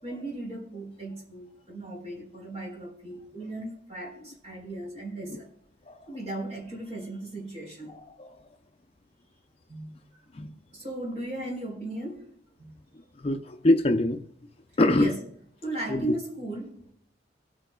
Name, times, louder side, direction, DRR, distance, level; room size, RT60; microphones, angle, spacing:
voice 1, 0.0-5.5 6.1-8.0 9.7-9.9 10.7-12.2 12.6-12.8 14.9-15.2 15.6-16.9, right 1 dB, 35° right, 4.1 m, -36 dB
voice 2, 7.9-8.3 10.4-10.5 13.2-14.2 14.8-15.1 15.9-16.0, left 1 dB, 30° left, 0.6 m, -23 dB
25.0 x 8.8 x 2.3 m
head